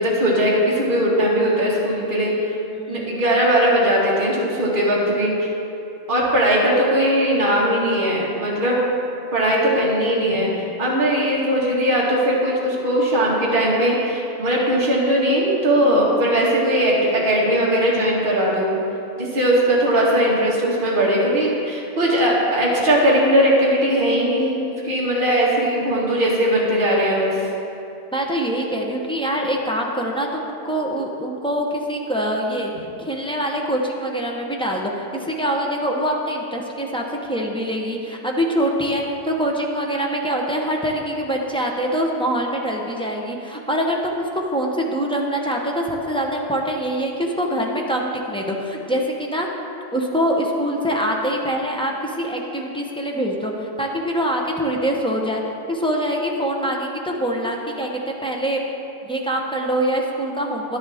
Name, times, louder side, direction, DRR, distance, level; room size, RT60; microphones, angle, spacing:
voice 1, 0.0-2.5 2.9-5.5 6.1-8.8 9.3-18.8 19.2-27.4, equal, 40° right, -5 dB, 1.9 m, -19 dB
voice 2, 2.7-3.1 15.8-16.2 28.1-32.7 33.0-49.5 49.9-55.4 55.7-58.6 59.0-60.8, equal, 5° left, -1 dB, 0.7 m, -24 dB
11.0 x 10.0 x 3.6 m, 2.8 s
omnidirectional pair, 1.3 m